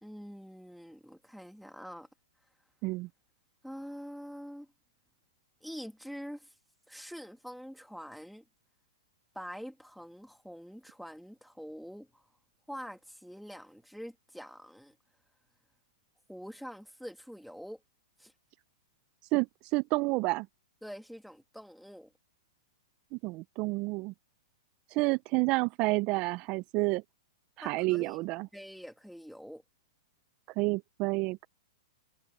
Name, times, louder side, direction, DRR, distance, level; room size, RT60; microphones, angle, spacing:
voice 1, 0.0-2.1 3.6-4.7 5.6-6.5 6.9-8.4 9.3-12.2 12.7-15.0 16.3-17.8 18.2-18.3 20.8-22.1 27.6-28.2 28.5-29.6, equal, ahead, 2.2 m, -45 dB
voice 2, 19.3-20.5 23.1-24.1 24.9-27.0 27.6-28.5 30.6-31.5, right 24 dB, 35° right, 0.4 m, -29 dB
hypercardioid pair, 140°, 3 cm